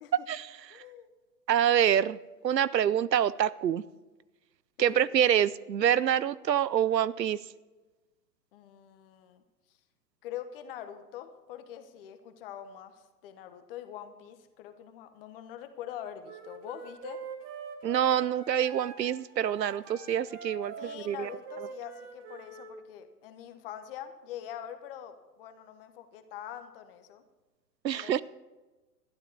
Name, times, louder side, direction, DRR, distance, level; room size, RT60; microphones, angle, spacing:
voice 1, 0.7-1.1 4.8-5.0 8.5-9.4 10.2-17.2 20.8-27.2 27.9-28.2, left 10 dB, 35° left, 9 dB, 1.1 m, -44 dB
voice 2, 1.5-2.2 2.4-3.8 4.8-7.4 17.8-21.3 27.8-28.2, right 9 dB, 80° right, 19 dB, 0.6 m, -26 dB
Wind instrument woodwind instrument, 16.2-22.7, right 5 dB, 30° right, 2.5 m, -44 dB
12.5 x 11.0 x 4.7 m, 1.2 s
figure-of-eight pair, 115°, 49 cm